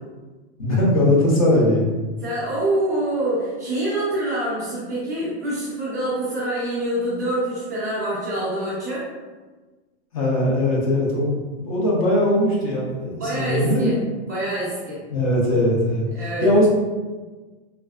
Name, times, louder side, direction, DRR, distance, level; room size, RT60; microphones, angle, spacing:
voice 1, 0.6-1.9 10.1-13.9 15.1-16.1 16.4-16.7, left 1 dB, 30° left, -4 dB, 0.6 m, -20 dB
voice 2, 2.2-9.1 13.1-14.0 14.3-15.0 16.1-16.5, right 1 dB, 15° right, -10 dB, 0.3 m, -26 dB
3.2 x 2.5 x 2.3 m, 1.3 s
supercardioid pair, 170°, 35 cm